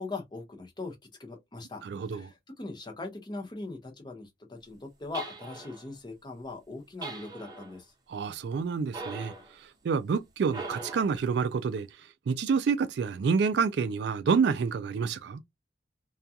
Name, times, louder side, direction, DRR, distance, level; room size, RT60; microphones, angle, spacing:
voice 1, 0.0-1.8 2.1-7.9, left 3 dB, 25° left, 0.8 m, -40 dB
voice 2, 1.8-2.3 8.1-15.4, right 5 dB, 60° right, 0.3 m, -28 dB
sound 1, 5.1-5.9 7.0-7.8 8.9-9.5 10.5-11.2, right 3 dB, 20° right, 0.8 m, -40 dB
2.3 x 2.2 x 2.7 m
head